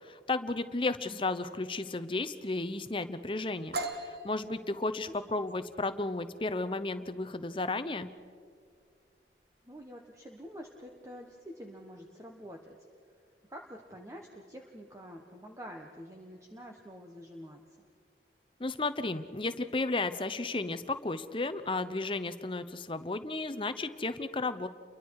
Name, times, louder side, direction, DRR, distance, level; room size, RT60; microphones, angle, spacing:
voice 1, 0.0-3.7 4.0-8.1 18.6-24.7, left 2 dB, 30° left, 11 dB, 0.8 m, -33 dB
sound 1, 3.7-11.4, right 2 dB, 60° right, 1.6 m, -44 dB
voice 2, 9.6-12.8 13.5-17.9, equal, 15° right, 1 dB, 1.3 m, -47 dB
30.0 x 23.0 x 4.8 m, 2.2 s
head